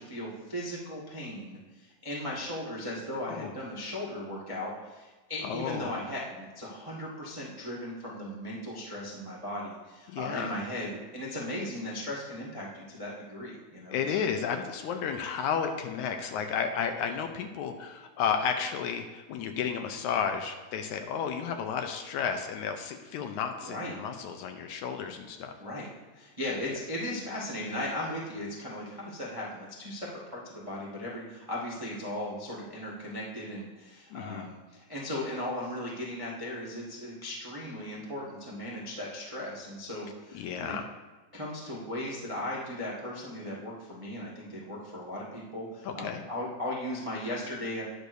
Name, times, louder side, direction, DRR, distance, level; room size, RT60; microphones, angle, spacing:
voice 1, 0.0-14.2 23.6-24.0 25.6-40.8 41.3-47.8, left 1 dB, 25° right, -4 dB, 0.6 m, -37 dB
voice 2, 5.4-6.0 10.1-10.6 13.9-25.5 34.1-34.5 40.3-40.9 45.8-46.2, left 7 dB, 80° left, 5 dB, 1.9 m, -32 dB
19.0 x 6.5 x 2.6 m, 1.2 s
omnidirectional pair, 3.7 m